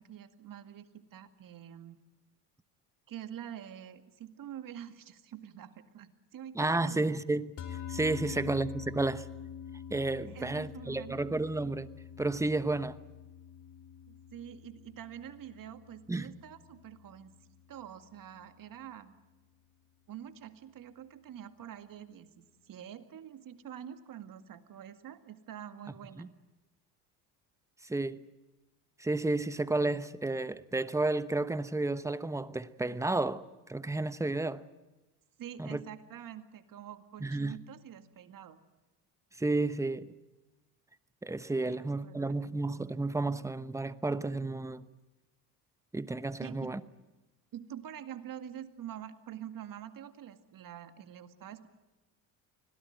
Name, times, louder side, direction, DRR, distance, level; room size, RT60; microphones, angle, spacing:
voice 1, 0.0-2.0 3.1-7.2 8.2-8.5 10.3-11.3 14.1-17.3 17.7-19.1 20.1-26.3 35.4-38.6 41.6-42.6 46.4-46.7 47.5-51.7, right 10 dB, 50° right, 2.1 m, -46 dB
voice 2, 6.5-9.3 9.9-11.9 12.2-13.0 16.1-16.3 26.2-26.3 27.8-28.2 29.0-33.4 33.7-34.6 35.6-35.8 37.2-37.6 39.4-40.1 41.2-44.8 45.9-46.8, right 2 dB, 5° right, 1.0 m, -32 dB
sound 1, 7.6-18.0, left 8 dB, 45° left, 2.1 m, -46 dB
25.0 x 17.5 x 9.2 m
supercardioid pair, 90°, 42 cm